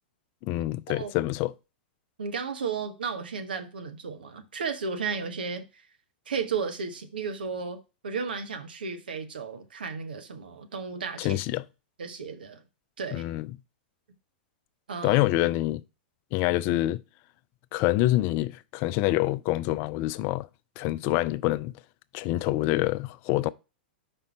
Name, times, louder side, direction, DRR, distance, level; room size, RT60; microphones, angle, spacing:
voice 1, 0.4-1.5 11.2-11.6 13.1-13.5 15.0-15.8 16.3-17.0 17.7-20.5 20.8-21.7 22.1-23.5, left 16 dB, 40° left, 0.4 m, -26 dB
voice 2, 2.2-5.8 6.3-7.8 8.0-11.4 12.0-12.6 13.0-13.2 14.9-15.2, right 5 dB, 70° right, 1.1 m, -34 dB
5.3 x 4.4 x 4.8 m
figure-of-eight pair, 100°, 5 cm